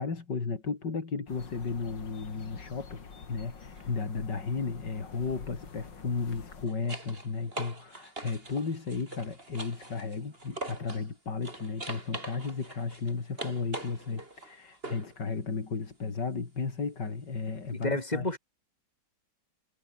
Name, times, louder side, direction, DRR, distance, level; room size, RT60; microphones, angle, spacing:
voice 1, 0.0-18.3, left 4 dB, 70° left, 3.7 m, -34 dB
sound 1, 1.3-6.7, left 5 dB, 90° left, 3.4 m, -47 dB
sound 2, 3.6-3.9 6.2-11.1 11.4-15.2 17.8-17.9, right 2 dB, 30° right, 4.3 m, -43 dB
voice 2, 17.8-18.4, left 2 dB, 20° left, 3.5 m, -29 dB
omnidirectional pair, 1.9 m